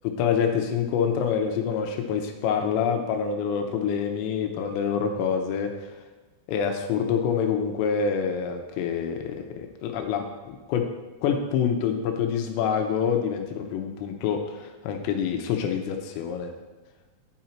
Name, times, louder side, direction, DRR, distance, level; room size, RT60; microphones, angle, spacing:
voice 1, 0.2-5.9 6.5-10.9 11.2-16.5, left 7 dB, 80° left, 4 dB, 2.9 m, -26 dB
11.5 x 5.4 x 4.4 m, 1.2 s
omnidirectional pair, 5.3 m